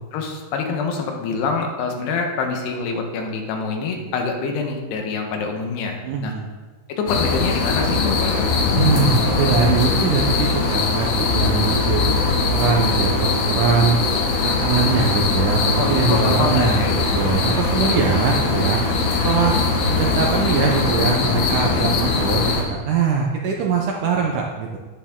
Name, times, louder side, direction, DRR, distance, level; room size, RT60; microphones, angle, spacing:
voice 1, 0.1-6.3 6.9-8.5 15.8-17.0 21.7-21.9, left 4 dB, 90° left, 3 dB, 3.3 m, -26 dB
voice 2, 6.0-6.4 8.7-14.1 14.4-18.9 19.2-19.6 19.9-24.8, right 5 dB, 75° right, 0 dB, 1.9 m, -22 dB
sound 1, 7.1-22.6, left 4 dB, 70° left, 3.0 m, -20 dB
11.0 x 9.6 x 3.7 m, 1.3 s
omnidirectional pair, 4.6 m